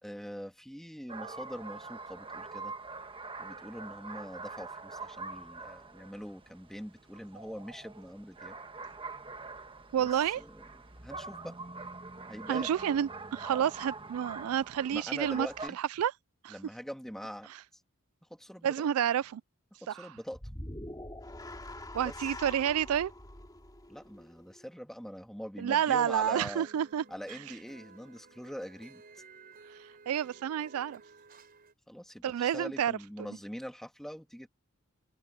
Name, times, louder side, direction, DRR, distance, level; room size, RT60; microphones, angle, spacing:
voice 1, 0.0-2.7 3.4-8.6 10.0-10.1 10.4-10.6 11.0-11.6 12.3-12.7 14.9-15.8 16.5-17.5 18.3-18.9 19.8-20.4 22.0-22.3 23.9-26.7 27.1-29.0 31.9-34.5, equal, ahead, 2.7 m, -43 dB
sound 1, 1.1-15.7, right 3 dB, 25° right, 1.4 m, -44 dB
voice 2, 9.9-10.4 12.5-15.5 15.8-16.1 16.4-16.6 18.6-19.4 19.9-20.1 21.9-23.1 25.6-27.0 30.1-31.0 32.2-32.9, right 9 dB, 90° right, 0.3 m, -29 dB
sound 2, 20.3-24.7, left 1 dB, 20° left, 2.6 m, -44 dB
sound 3, 26.2-31.7, right 4 dB, 45° right, 4.7 m, -55 dB
open air
head